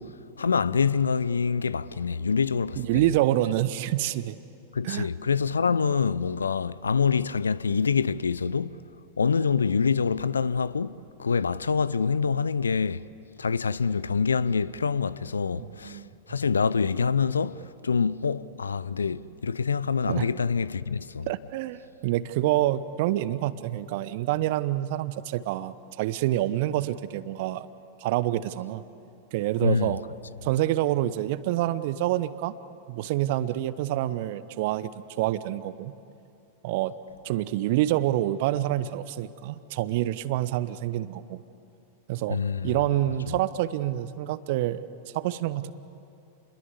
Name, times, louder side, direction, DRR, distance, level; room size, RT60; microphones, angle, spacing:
voice 1, 0.0-3.0 4.7-8.8 9.2-13.0 13.4-16.0 16.3-21.3 29.6-30.0 42.3-42.7 43.3-43.4, left 5 dB, 75° left, 0.6 m, -26 dB
voice 2, 2.8-4.4 4.8-5.1 15.6-16.1 20.0-20.3 21.3-27.7 28.0-28.8 29.3-30.0 30.4-32.5 32.9-35.9 36.6-36.9 37.2-41.4 42.1-44.9 45.1-45.7, right 14 dB, 50° right, 0.9 m, -27 dB
29.5 x 22.0 x 8.3 m
figure-of-eight pair, 95°, 0 cm